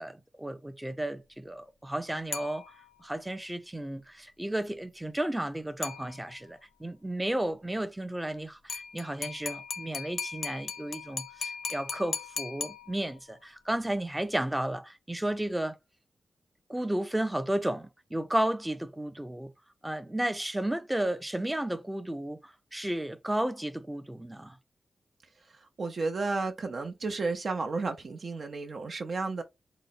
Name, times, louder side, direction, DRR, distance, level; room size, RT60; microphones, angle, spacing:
voice 1, 0.0-2.7 3.0-15.8 16.7-19.5 19.8-24.6, right 1 dB, 10° right, 0.5 m, -33 dB
sound 1, 2.3-3.1 5.8-6.6 8.7-13.4, left 5 dB, 80° left, 0.6 m, -38 dB
voice 2, 25.8-29.4, right 3 dB, 55° right, 0.6 m, -32 dB
3.9 x 2.1 x 4.0 m
wide cardioid pair, 110°, 0 cm